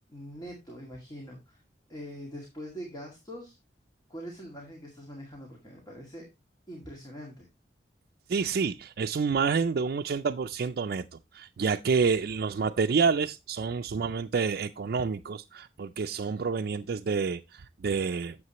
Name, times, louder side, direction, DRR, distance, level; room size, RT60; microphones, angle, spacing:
voice 1, 0.1-1.6 1.9-3.6 4.1-6.3 6.7-7.5, equal, 25° left, 2.1 m, -43 dB
voice 2, 8.3-18.4, right 5 dB, 60° right, 0.4 m, -28 dB
9.5 x 7.5 x 2.9 m
head